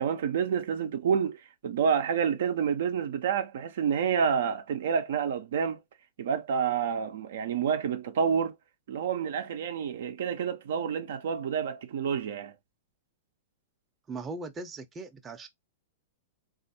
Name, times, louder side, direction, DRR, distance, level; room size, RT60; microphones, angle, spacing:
voice 1, 0.0-5.8 6.2-8.5 8.9-12.5, right 7 dB, 65° right, 0.5 m, -28 dB
voice 2, 14.1-15.5, right 3 dB, 20° right, 0.6 m, -39 dB
3.2 x 2.5 x 2.7 m
hypercardioid pair, 110°, 0 cm